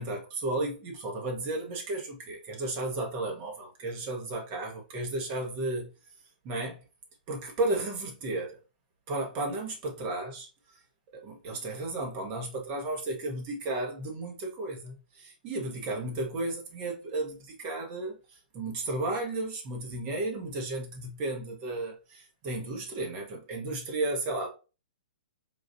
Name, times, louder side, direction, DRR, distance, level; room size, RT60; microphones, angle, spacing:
voice 1, 0.0-5.9 6.4-6.8 7.3-8.6 9.1-10.5 11.1-24.5, right 2 dB, 35° right, 1.2 m, -33 dB
5.8 x 2.5 x 2.6 m
figure-of-eight pair, 120°, 5 cm